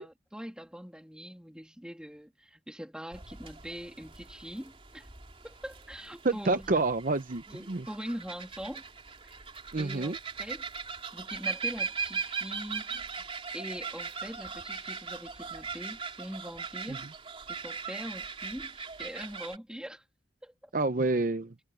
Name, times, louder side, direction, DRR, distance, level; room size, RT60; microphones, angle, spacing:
voice 1, 0.0-5.1 5.4-6.7 7.5-8.8 9.2-9.3 9.8-10.7 11.1-13.1 13.5-17.0 17.5-20.0 20.4-20.7, equal, 5° right, 2.8 m, -42 dB
sound 1, 3.1-19.6, right 5 dB, 35° right, 3.7 m, -39 dB
voice 2, 6.2-7.9 9.7-10.2 16.9-17.0 20.7-21.5, right 3 dB, 50° right, 0.7 m, -28 dB
head